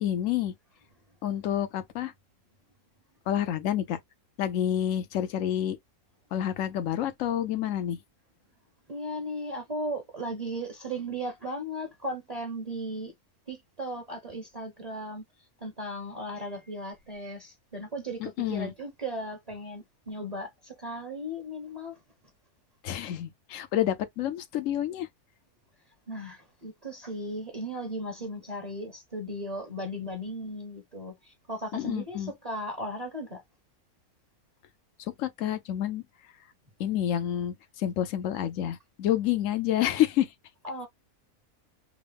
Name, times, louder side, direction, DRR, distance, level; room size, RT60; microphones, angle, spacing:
voice 1, 0.0-0.5 1.2-2.1 3.3-4.0 4.4-5.8 6.3-8.0 18.2-18.7 22.8-25.1 31.7-32.3 35.2-36.0 36.8-40.3, left 11 dB, 65° left, 1.0 m, -28 dB
voice 2, 8.9-13.1 13.5-15.2 15.6-22.0 26.1-33.4 40.6-40.9, right 1 dB, 30° right, 0.9 m, -36 dB
3.6 x 2.1 x 3.3 m
omnidirectional pair, 1.5 m